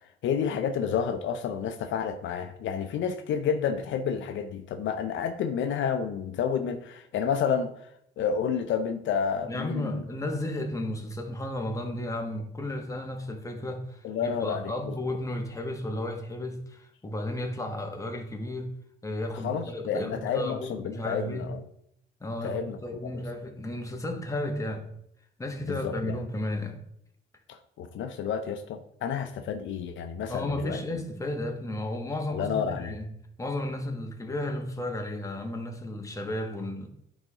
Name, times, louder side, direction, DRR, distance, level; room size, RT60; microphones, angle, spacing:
voice 1, 0.0-7.9 8.2-10.0 14.0-15.0 19.4-21.6 22.4-22.8 23.0-23.2 25.7-26.2 27.5-30.8 32.3-32.9, left 7 dB, 75° left, 0.6 m, -30 dB
voice 2, 9.4-18.7 19.0-21.5 22.2-24.9 25.4-26.8 30.3-33.1 33.4-36.9, left 1 dB, 15° left, 1.2 m, -33 dB
9.4 x 4.8 x 2.9 m
cardioid pair, 90°, 20 cm